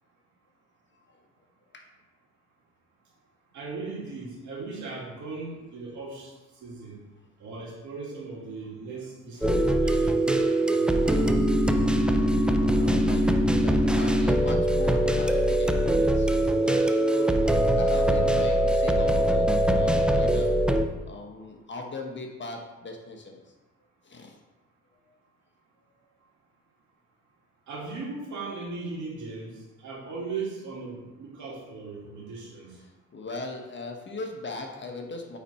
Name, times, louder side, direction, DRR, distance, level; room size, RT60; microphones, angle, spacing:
voice 1, 3.5-7.0 7.4-10.9 27.7-32.8, right 4 dB, 70° right, -4 dB, 2.5 m, -38 dB
sound 1, 9.4-20.9, right 1 dB, 5° right, 0.5 m, -22 dB
voice 2, 12.8-13.2 13.6-17.3 17.8-20.5 21.1-23.4 24.0-24.3 33.1-35.4, left 2 dB, 40° left, 2 dB, 1.2 m, -38 dB
8.4 x 4.2 x 4.4 m, 1.1 s
cardioid pair, 90°, 30 cm